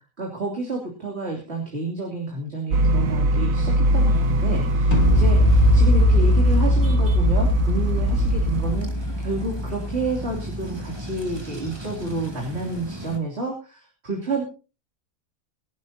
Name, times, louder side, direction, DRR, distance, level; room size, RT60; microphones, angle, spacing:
voice 1, 0.0-14.4, right 2 dB, 50° right, -1 dB, 3.2 m, -30 dB
sound 1, 2.7-8.8, equal, 80° right, 1.3 m, -22 dB
sound 2, 3.8-13.2, equal, 20° right, 2.2 m, -36 dB
sound 3, 4.9-10.9, left 1 dB, 55° left, 3.1 m, -21 dB
24.0 x 11.5 x 2.8 m, 0.32 s
omnidirectional pair, 1.4 m